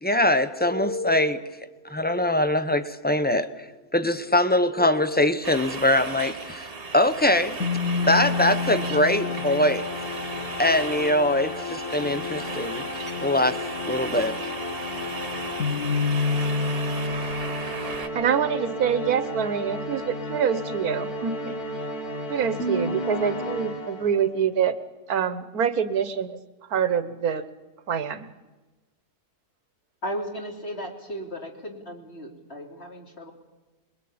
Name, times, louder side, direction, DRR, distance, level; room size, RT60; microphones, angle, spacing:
voice 1, 0.0-1.6 1.8-3.6 3.9-9.9 10.6-12.8 13.2-13.6 13.9-14.6, left 1 dB, 10° left, 11 dB, 0.6 m, -23 dB
sound 1, 5.4-18.1, right 4 dB, 40° right, 1.5 m, -36 dB
sound 2, 7.6-24.4, left 3 dB, 70° left, 2.6 m, -30 dB
voice 2, 18.1-21.8 22.3-24.7 25.1-26.4 26.7-27.4 27.9-28.3, right 7 dB, 70° right, 13 dB, 1.6 m, -25 dB
voice 3, 30.0-33.3, equal, 40° left, 1 dB, 3.4 m, -35 dB
25.5 x 22.0 x 8.8 m, 1.2 s
omnidirectional pair, 1.6 m